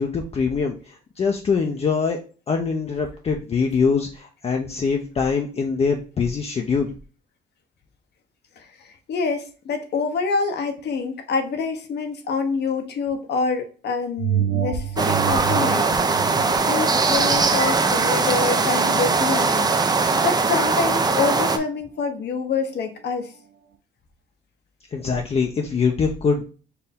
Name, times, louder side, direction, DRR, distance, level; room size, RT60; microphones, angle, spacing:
voice 1, 0.0-2.2 2.5-6.9 24.9-26.4, left 5 dB, 35° left, 2 dB, 0.5 m, -23 dB
voice 2, 8.6-15.9 16.7-19.7 20.2-23.3, left 5 dB, 65° left, 6 dB, 0.9 m, -26 dB
sound 1, 14.2-19.1 19.6-19.7, right 10 dB, 85° right, 0.6 m, -29 dB
sound 2, 15.0-21.6, right 4 dB, 20° right, 0.5 m, -20 dB
4.5 x 2.6 x 3.5 m, 0.37 s
cardioid pair, 110°, 19 cm